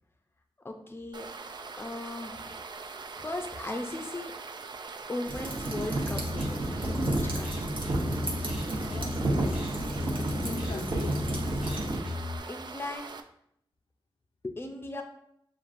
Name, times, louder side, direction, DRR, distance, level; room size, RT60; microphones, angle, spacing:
voice 1, 0.6-2.6 3.2-4.3 5.1-6.7 7.0-7.7 12.5-13.2 14.4-15.0, left 2 dB, 25° left, 4 dB, 0.5 m, -38 dB
sound 1, 1.1-13.2, right 4 dB, 55° right, 0.3 m, -42 dB
sound 2, 5.3-12.0, right 1 dB, 70° right, 0.9 m, -31 dB
sound 3, 6.0-12.4, left 3 dB, 10° right, 0.9 m, -37 dB
voice 2, 8.9-11.6, left 2 dB, 80° left, 2 dB, 0.5 m, -41 dB
6.8 x 2.5 x 2.5 m, 0.74 s
wide cardioid pair, 95°, 9 cm